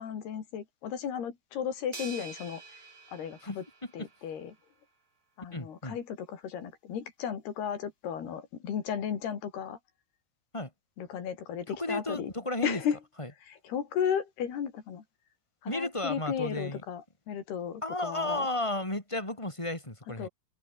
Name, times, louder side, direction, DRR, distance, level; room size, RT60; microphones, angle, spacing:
voice 1, 0.0-2.6 3.1-3.6 3.9-4.6 5.4-9.8 11.0-12.3 12.6-13.0 13.5-15.0 15.6-18.5 20.2-20.3, left 8 dB, 80° left, 5.4 m, -34 dB
sound 1, 1.9-4.4, right 4 dB, 45° right, 7.0 m, -47 dB
voice 2, 5.5-6.0 10.5-10.7 11.7-12.8 13.2-13.3 15.6-16.8 17.8-20.3, left 1 dB, 5° left, 4.4 m, -33 dB
open air
omnidirectional pair, 4.6 m